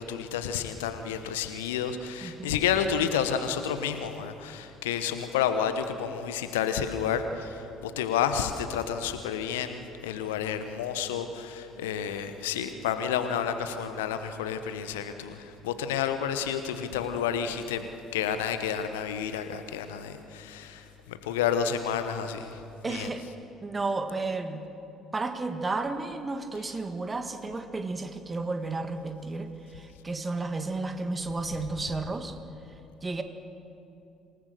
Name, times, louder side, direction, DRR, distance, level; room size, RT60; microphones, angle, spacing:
voice 1, 0.0-17.9 18.1-22.6 22.9-23.1, left 8 dB, 70° left, 9 dB, 1.1 m, -30 dB
voice 2, 2.2-2.6 22.8-23.2 23.6-24.6 25.1-32.4 33.0-33.2, right 3 dB, 25° right, 7 dB, 1.8 m, -32 dB
27.0 x 18.5 x 6.8 m, 2.7 s
figure-of-eight pair, 50°, 0 cm